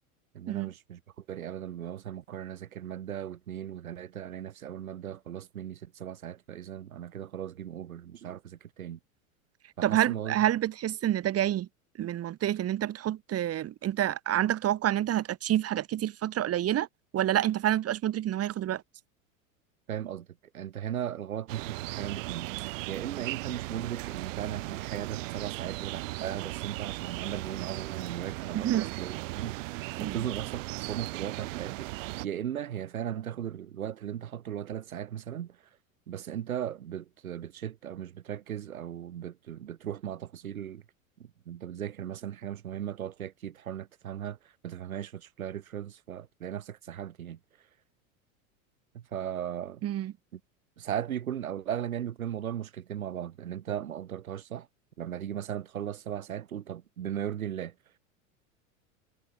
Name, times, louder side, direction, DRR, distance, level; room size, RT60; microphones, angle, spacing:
voice 1, 0.3-9.0 9.8-10.4 19.9-20.3 20.5-22.5 22.9-29.6 30.0-35.6 36.1-40.8 41.2-44.4 44.6-47.4 48.9-49.8 50.3-50.4 50.8-54.7 55.0-57.7, right 10 dB, 85° right, 3.0 m, -37 dB
voice 2, 9.8-11.7 12.0-16.9 17.1-18.8 28.5-28.9 30.0-30.2 49.8-50.1, right 12 dB, 35° right, 1.9 m, -28 dB
sound 1, 21.5-32.3, right 22 dB, 65° right, 3.0 m, -37 dB
hypercardioid pair, 95°, 41 cm